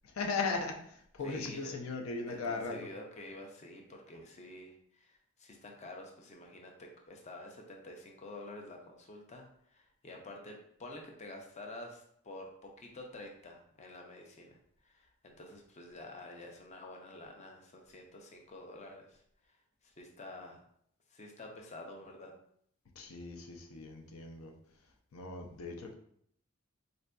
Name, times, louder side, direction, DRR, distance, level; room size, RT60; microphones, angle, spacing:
voice 1, 0.0-2.9 23.0-24.5 25.1-26.0, left 4 dB, 80° left, 3 dB, 0.6 m, -38 dB
voice 2, 1.2-1.7 2.3-14.6 14.8-19.2 19.8-20.6 21.1-22.3, left 1 dB, 35° left, 1 dB, 0.5 m, -49 dB
4.2 x 2.6 x 2.2 m, 0.67 s
head